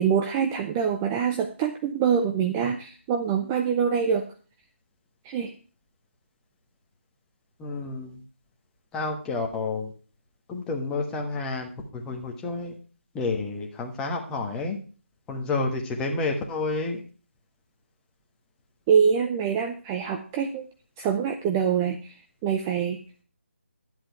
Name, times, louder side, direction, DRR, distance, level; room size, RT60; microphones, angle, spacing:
voice 1, 0.0-4.3 5.2-5.5 18.9-20.6 21.0-22.1 22.4-23.2, right 7 dB, 15° right, 5 dB, 0.5 m, -25 dB
voice 2, 7.6-8.2 8.9-9.9 10.5-12.8 13.1-14.8 15.3-17.0, left 3 dB, 10° left, 2 dB, 1.4 m, -30 dB
11.5 x 8.0 x 4.6 m, 0.38 s
figure-of-eight pair, 155°, 7 cm